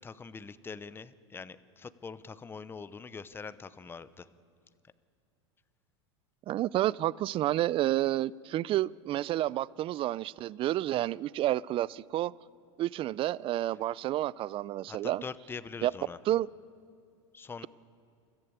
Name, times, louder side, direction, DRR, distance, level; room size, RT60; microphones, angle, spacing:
voice 1, 0.0-4.3 14.9-16.2 17.3-17.7, left 5 dB, 15° left, 0.8 m, -43 dB
voice 2, 6.5-12.3 12.8-15.2 15.8-15.9 16.3-16.5, right 14 dB, 35° right, 0.5 m, -30 dB
28.5 x 14.0 x 8.2 m
hypercardioid pair, 105°, 15 cm